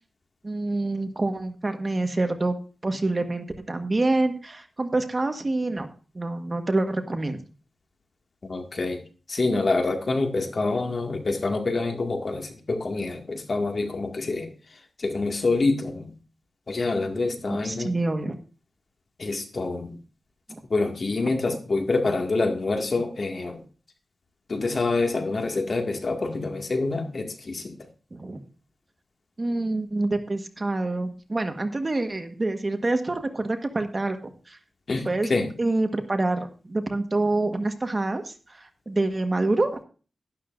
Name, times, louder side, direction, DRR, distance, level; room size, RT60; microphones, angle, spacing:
voice 1, 0.4-2.5 2.8-5.9 6.1-7.4 17.5-18.4 20.5-20.6 21.2-21.3 28.1-28.4 29.4-34.6 35.0-35.3 35.6-39.8, right 2 dB, 30° right, 6 dB, 1.5 m, -27 dB
voice 2, 8.5-9.0 9.3-14.5 15.0-16.1 16.7-17.9 19.2-20.0 20.7-23.6 24.5-27.8 34.9-35.5, left 3 dB, 50° left, 4 dB, 2.1 m, -26 dB
12.0 x 12.0 x 2.6 m, 0.36 s
wide cardioid pair, 95°, 0 cm